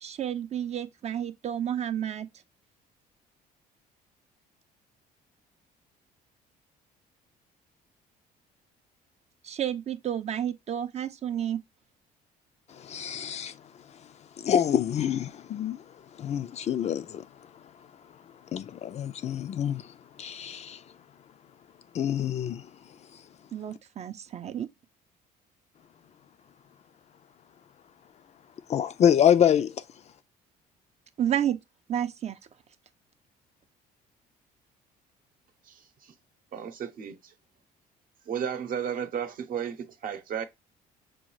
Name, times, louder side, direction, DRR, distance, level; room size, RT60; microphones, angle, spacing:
voice 1, 0.0-2.3 9.4-11.6 23.5-24.7 31.2-31.6 31.9-32.4, right 10 dB, 40° right, 0.5 m, -30 dB
voice 2, 12.8-13.5 14.4-15.8 16.2-17.2 18.5-19.8 20.2-20.8 21.9-22.6 28.7-29.7, left 9 dB, 40° left, 0.4 m, -25 dB
voice 3, 35.7-36.1 36.5-37.3 38.3-40.4, right 8 dB, 55° right, 0.8 m, -34 dB
6.0 x 2.3 x 3.1 m
cardioid pair, 110°, 17 cm